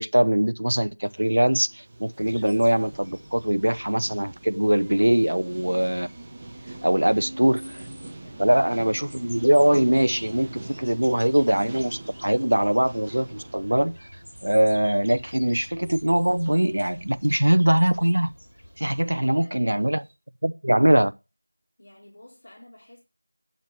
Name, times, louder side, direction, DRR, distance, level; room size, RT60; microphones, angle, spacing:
voice 1, 0.0-6.1 6.8-7.6 8.4-13.9 14.4-18.3 18.8-20.0 20.4-21.1, right 1 dB, 60° right, 0.7 m, -22 dB
sound 1, 1.0-18.4 18.6-18.9 19.3-19.4 19.5-19.7 20.0-20.1, right 2 dB, 15° right, 1.0 m, -44 dB
sound 2, 2.2-19.3, equal, 90° left, 3.9 m, -48 dB
voice 2, 7.1-7.5 8.2-8.5 19.1-20.0 21.8-23.0, left 1 dB, 40° left, 4.2 m, -51 dB
10.5 x 6.5 x 6.7 m
figure-of-eight pair, 175°, 0 cm